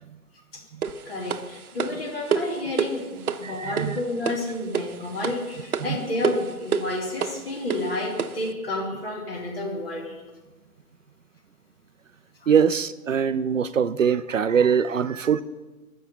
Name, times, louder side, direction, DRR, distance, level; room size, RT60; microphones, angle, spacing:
sound 1, 0.8-8.5, right 6 dB, 75° right, 0.9 m, -30 dB
voice 1, 1.0-10.2 12.4-12.5, left 1 dB, 40° left, -1 dB, 3.1 m, -30 dB
voice 2, 3.4-4.0 5.9-6.0 12.5-15.4, right 7 dB, 60° right, 14 dB, 0.5 m, -22 dB
14.5 x 6.3 x 6.9 m, 1.2 s
hypercardioid pair, 175°, 44 cm